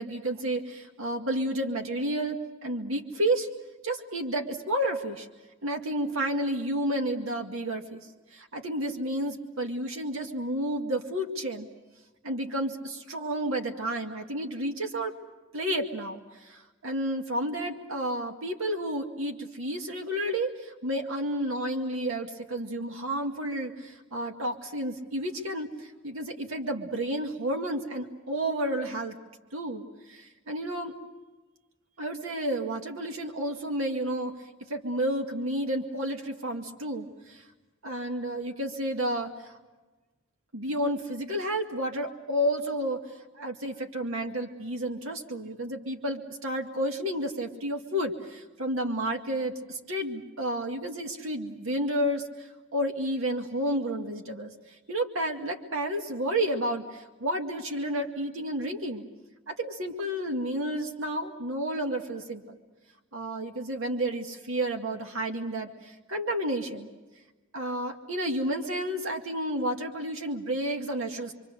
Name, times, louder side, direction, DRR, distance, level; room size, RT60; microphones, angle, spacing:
voice 1, 0.0-3.5 3.8-5.3 5.6-11.7 12.2-15.1 15.5-29.2 29.5-30.9 32.0-34.3 34.7-37.4 37.8-39.5 40.5-43.0 43.3-54.5 54.9-59.0 59.5-62.6 63.1-66.9 67.5-71.3, right 1 dB, 85° right, 3 dB, 2.1 m, -31 dB
27.0 x 25.0 x 6.6 m, 1.2 s
head